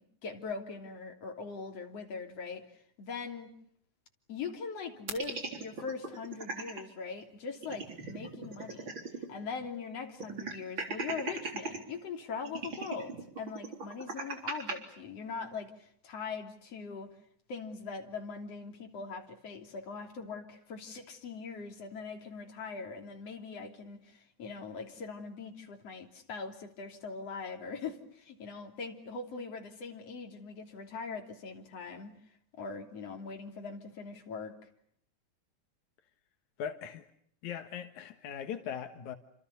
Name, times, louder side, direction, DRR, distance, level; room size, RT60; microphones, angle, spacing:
voice 1, 0.2-2.7 3.0-3.5 4.3-17.1 17.5-32.1 32.6-34.6, left 5 dB, 55° left, 4.2 m, -41 dB
sound 1, 5.1-6.8 7.2-7.3 7.6-9.3 9.6-9.7 10.2-11.8 12.5-14.8, right 3 dB, 40° right, 4.3 m, -38 dB
voice 2, 36.6-37.0 37.4-39.2, left 8 dB, 90° left, 2.9 m, -39 dB
29.5 x 26.5 x 6.9 m
omnidirectional pair, 3.3 m